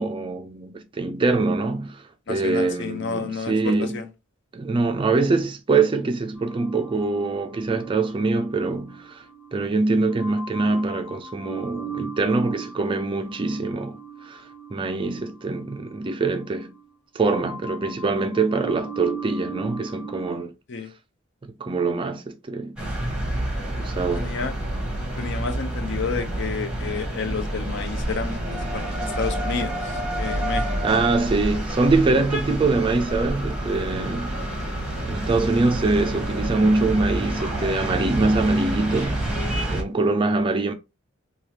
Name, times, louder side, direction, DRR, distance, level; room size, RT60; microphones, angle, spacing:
voice 1, 0.0-2.0 2.3-4.0 4.5-9.2 9.5-14.0 14.2-14.4 14.7-16.7 17.1-20.5 21.4-22.7 23.8-24.3 30.8-34.4 35.0-39.2 39.7-40.7, right 3 dB, 25° right, 0.3 m, -23 dB
voice 2, 2.3-4.1 20.7-20.9 24.1-24.5 25.2-29.7 30.2-30.7, left 5 dB, 55° left, 0.5 m, -30 dB
sound 1, 6.4-9.6 10.1-16.9 17.2-20.4, right 5 dB, 25° left, 1.3 m, -39 dB
sound 2, 22.8-39.8, right 1 dB, 5° right, 0.8 m, -28 dB
3.3 x 2.3 x 2.8 m
head